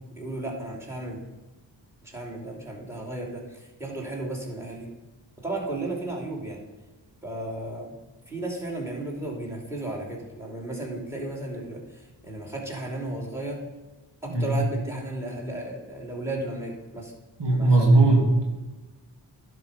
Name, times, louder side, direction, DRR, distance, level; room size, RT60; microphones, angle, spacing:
voice 1, 0.1-1.2 2.0-4.9 5.4-6.6 7.2-8.0 8.3-13.6 14.2-17.1 17.5-17.9, right 2 dB, 5° right, 0 dB, 3.2 m, -34 dB
voice 2, 17.4-18.5, right 2 dB, 65° right, -1 dB, 2.8 m, -19 dB
11.0 x 5.6 x 5.3 m, 1.2 s
cardioid pair, 70°, 45 cm